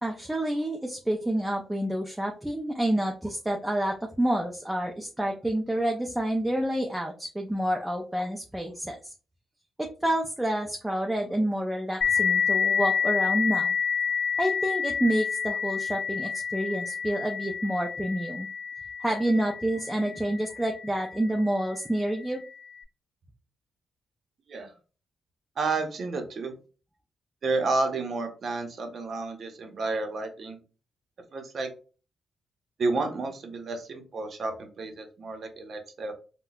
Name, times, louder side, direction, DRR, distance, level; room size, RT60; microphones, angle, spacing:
voice 1, 0.0-9.1 9.8-13.8 14.4-18.5 19.0-22.4, right 1 dB, 10° right, 1 dB, 0.5 m, -28 dB
sound 1, 12.0-21.2, left 6 dB, 60° left, 0.6 m, -29 dB
voice 2, 25.6-26.5 27.4-30.6 31.3-31.7 32.8-36.1, right 3 dB, 60° right, 5 dB, 0.8 m, -31 dB
3.9 x 2.2 x 2.3 m, 0.35 s
cardioid pair, 85°, 0 cm